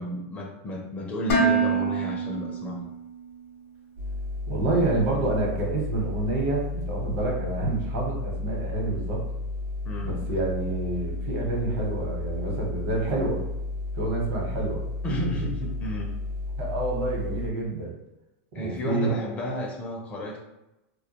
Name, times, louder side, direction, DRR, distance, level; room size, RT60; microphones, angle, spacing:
voice 1, 0.0-2.9 9.9-10.2 15.0-16.1 18.5-20.4, left 1 dB, 20° left, -1 dB, 0.4 m, -32 dB
Dishes pots and pans, 1.3-3.4, right 4 dB, 80° left, 0.6 m, -25 dB
sound 1, 4.0-17.5, left 2 dB, 85° right, 0.7 m, -33 dB
voice 2, 4.5-9.2 10.0-13.4 14.0-14.9 16.6-18.0 18.5-19.1, right 2 dB, 60° right, -1 dB, 0.9 m, -28 dB
2.2 x 2.1 x 2.8 m, 0.94 s
supercardioid pair, 150°, 7 cm